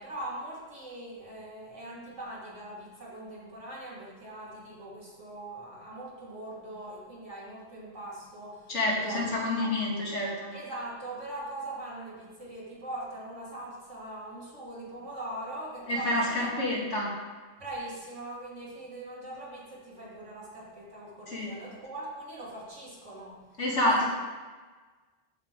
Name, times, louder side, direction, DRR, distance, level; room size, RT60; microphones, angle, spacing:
voice 1, 0.0-9.7 10.5-16.8 17.6-23.4 23.7-24.1, right 1 dB, 75° right, -6 dB, 2.7 m, -41 dB
voice 2, 8.7-10.5 15.9-17.1 21.3-21.6 23.6-24.1, left 1 dB, 75° left, -3 dB, 2.4 m, -28 dB
14.0 x 5.4 x 3.7 m, 1.3 s
omnidirectional pair, 1.2 m